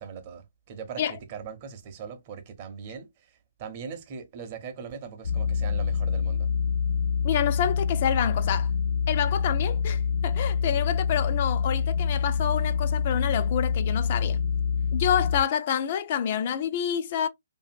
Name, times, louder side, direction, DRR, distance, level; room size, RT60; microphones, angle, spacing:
voice 1, 0.0-6.5, right 6 dB, 35° right, 0.7 m, -40 dB
sound 1, 5.2-15.4, left 6 dB, 70° left, 0.7 m, -26 dB
voice 2, 7.2-8.7 9.1-14.4 14.9-17.3, left 9 dB, 40° left, 0.3 m, -28 dB
2.6 x 2.5 x 2.4 m
figure-of-eight pair, 140°, 0 cm